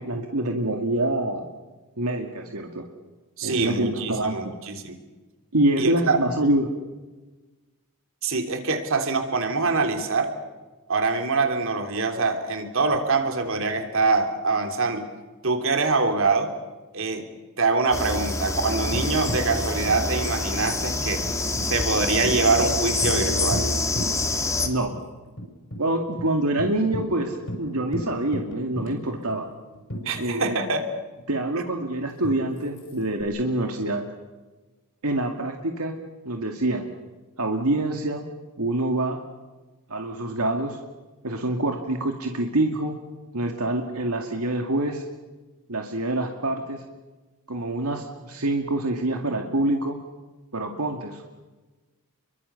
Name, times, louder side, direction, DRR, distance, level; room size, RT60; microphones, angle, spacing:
voice 1, 0.0-1.4 2.0-2.9 3.4-4.5 5.5-6.7 24.6-24.9 25.8-29.5 30.2-30.6 31.3-34.0 35.0-36.0 36.2-36.9 37.4-38.2 38.6-39.2 39.9-40.8 41.2-42.9 43.3-45.0 45.7-46.8 47.5-50.0 50.5-51.2, right 1 dB, 80° right, 3 dB, 2.3 m, -26 dB
voice 2, 3.4-5.0 5.8-6.2 8.2-10.3 10.9-15.1 15.4-16.5 16.9-17.3 17.6-21.3 21.6-23.6 30.0-30.8, right 3 dB, 60° right, 6 dB, 3.2 m, -24 dB
sound 1, 17.9-24.7, left 2 dB, 15° left, 2.0 m, -26 dB
Tambourine, 18.9-24.6 24.9-25.0 25.4-25.8 26.2-26.3 26.6-30.7 32.2-33.2, equal, 60° left, 6.3 m, -36 dB
29.5 x 23.5 x 7.0 m, 1.2 s
head